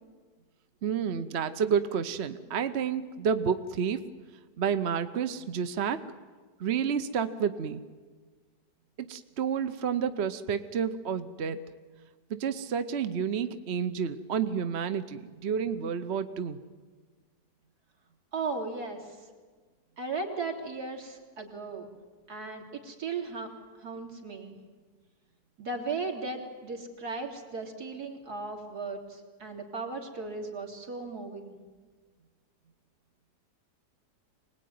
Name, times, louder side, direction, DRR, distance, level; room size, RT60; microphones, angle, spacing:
voice 1, 0.8-4.0 4.6-6.0 6.6-7.8 9.0-11.6 12.3-16.6, right 7 dB, 50° right, 10 dB, 1.0 m, -30 dB
voice 2, 18.3-19.3 20.0-21.9 22.3-23.5 23.8-24.6 25.6-31.5, right 3 dB, 70° right, 2 dB, 3.8 m, -36 dB
24.5 x 19.5 x 9.4 m, 1.4 s
omnidirectional pair, 1.7 m